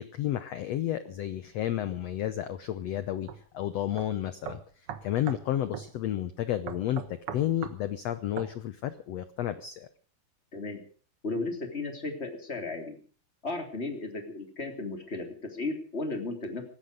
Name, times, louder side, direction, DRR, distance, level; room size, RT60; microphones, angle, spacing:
voice 1, 0.0-3.3 3.5-9.9, left 12 dB, 90° left, 12 dB, 1.4 m, -32 dB
sound 1, 3.3-3.4 4.0-4.1 4.4-5.5 5.7-5.9 6.7-7.8 8.4-8.5, right 8 dB, 60° right, 1.6 m, -39 dB
voice 2, 10.5-10.8 11.2-13.0 13.4-16.7, left 3 dB, 20° left, 4 dB, 3.0 m, -35 dB
18.0 x 15.0 x 5.2 m, 0.43 s
omnidirectional pair, 4.2 m